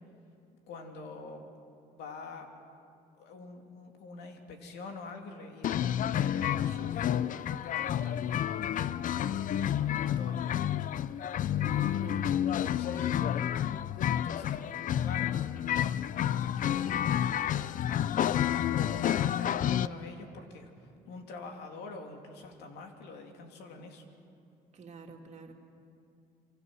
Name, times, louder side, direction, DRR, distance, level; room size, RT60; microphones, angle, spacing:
voice 1, 0.7-1.4 1.9-2.5 3.2-8.9 9.3-10.9 12.6-13.2 14.0-14.6 15.0-15.3 16.0-17.3 18.3-20.7 21.1-24.0, left 3 dB, 80° left, 3 dB, 2.9 m, -46 dB
sound 1, 5.6-19.9, left 10 dB, 50° left, 0.6 m, -30 dB
voice 2, 11.6-12.3 24.7-25.5, right 4 dB, 40° right, 2 dB, 2.8 m, -47 dB
26.0 x 24.5 x 6.3 m, 2.5 s
cardioid pair, 110°, 17 cm